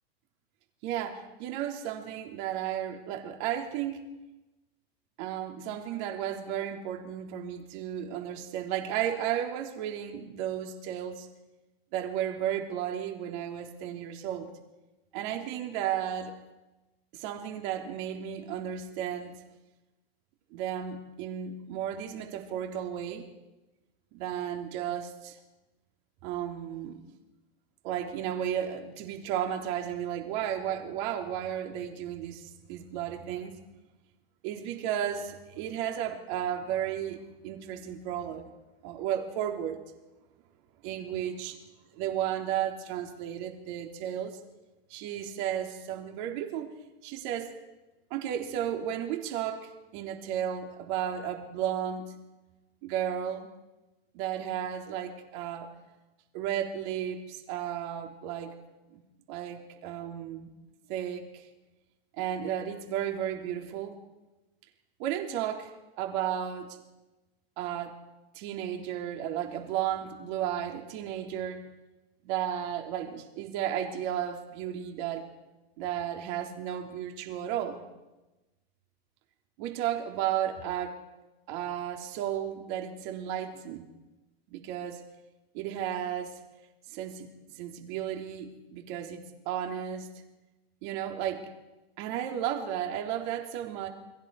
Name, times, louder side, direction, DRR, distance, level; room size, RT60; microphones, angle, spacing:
voice 1, 0.8-4.0 5.2-11.3 11.9-14.5 15.1-16.3 17.1-19.4 20.5-23.3 24.1-25.4 26.2-27.0 27.8-33.5 34.4-38.4 38.8-39.8 40.8-41.6 41.9-44.4 44.9-46.7 47.0-47.5 48.1-52.1 52.8-53.5 54.1-55.7 56.3-58.6 58.9-59.0 59.3-60.5 60.9-61.5 62.2-64.0 65.0-66.8 67.6-68.0 68.3-71.6 72.2-75.3 75.8-77.8 79.6-81.0 81.5-83.9 84.5-85.0 85.5-86.4 86.9-87.3 87.5-90.1 90.8-91.5 92.0-93.9, right 10 dB, 50° right, 3 dB, 3.7 m, -33 dB
29.5 x 23.0 x 4.9 m, 1.0 s
supercardioid pair, 135°, 31 cm